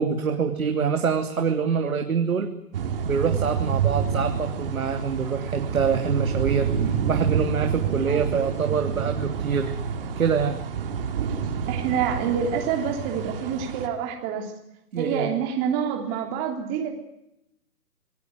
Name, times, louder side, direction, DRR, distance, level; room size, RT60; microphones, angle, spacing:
voice 1, 0.0-2.5 3.0-9.7 10.2-10.6 14.9-15.3, right 6 dB, 60° right, 5 dB, 3.1 m, -25 dB
sound 1, 2.7-13.9, right 7 dB, 35° right, 3.3 m, -28 dB
voice 2, 8.1-8.4 8.7-8.8 11.7-14.5 15.0-16.9, right 7 dB, 20° right, 2 dB, 3.3 m, -27 dB
28.0 x 19.0 x 9.7 m, 0.82 s
hypercardioid pair, 150°, 47 cm